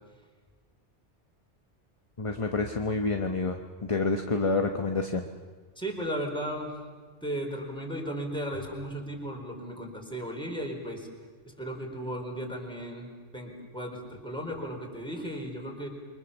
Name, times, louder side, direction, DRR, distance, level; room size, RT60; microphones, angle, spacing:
voice 1, 2.2-5.2, left 3 dB, 30° left, 4 dB, 1.1 m, -28 dB
voice 2, 5.8-6.7 7.2-11.1 11.4-15.9, equal, 5° left, 0 dB, 4.5 m, -35 dB
28.5 x 24.0 x 7.1 m, 1.5 s
omnidirectional pair, 1.2 m